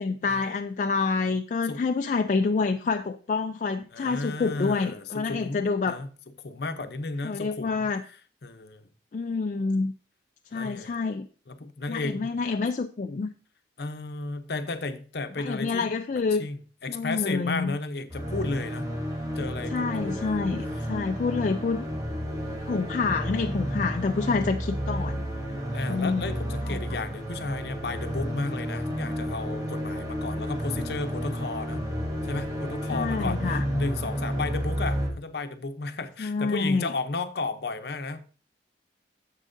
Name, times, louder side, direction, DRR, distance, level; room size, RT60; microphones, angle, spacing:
voice 1, 0.0-6.0 7.2-8.0 9.1-9.9 10.5-11.3 11.9-13.3 15.4-16.5 16.9-17.7 19.7-21.9 22.7-25.2 25.9-26.3 26.7-26.8 32.9-33.6 36.2-36.9, left 4 dB, 45° left, 6 dB, 0.3 m, -27 dB
voice 2, 3.9-6.1 6.4-7.9 8.4-8.8 10.5-10.9 11.5-12.4 13.8-15.8 16.4-18.9 19.3-20.4 20.7-20.9 25.7-31.8 32.2-38.2, left 3 dB, 60° left, 9 dB, 0.7 m, -33 dB
sound 1, 18.1-35.1, equal, 20° right, 1.4 m, -31 dB
9.9 x 7.4 x 2.6 m, 0.40 s
head